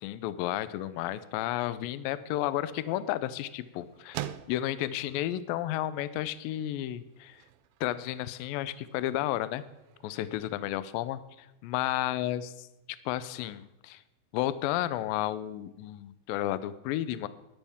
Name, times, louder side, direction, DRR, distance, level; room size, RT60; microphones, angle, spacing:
voice 1, 0.0-7.4 7.8-9.6 10.0-12.7 13.1-14.0 14.3-17.3, left 13 dB, 80° left, 15 dB, 2.1 m, -32 dB
sound 1, 2.1-11.9, right 13 dB, 80° right, 2.1 m, -48 dB
12.5 x 11.5 x 3.6 m, 0.94 s
omnidirectional pair, 4.6 m